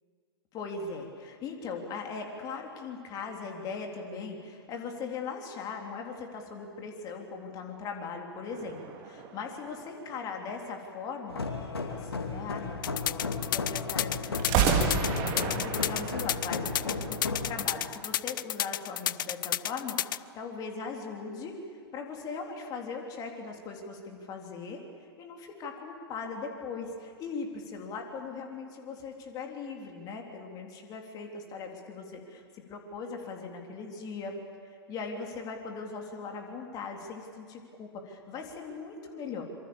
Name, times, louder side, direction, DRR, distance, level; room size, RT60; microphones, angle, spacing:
voice 1, 0.5-21.5 21.9-24.8 25.2-34.4 34.9-39.4, left 4 dB, 30° left, 2 dB, 3.6 m, -39 dB
sound 1, 8.5-10.3 14.4-17.5, right 6 dB, 35° right, 3.1 m, -31 dB
sound 2, 11.3-17.6, left 4 dB, 70° left, 2.7 m, -35 dB
sound 3, 12.8-20.2, left 12 dB, 55° left, 0.6 m, -31 dB
26.0 x 24.0 x 7.2 m, 2.2 s
figure-of-eight pair, 105°, 13 cm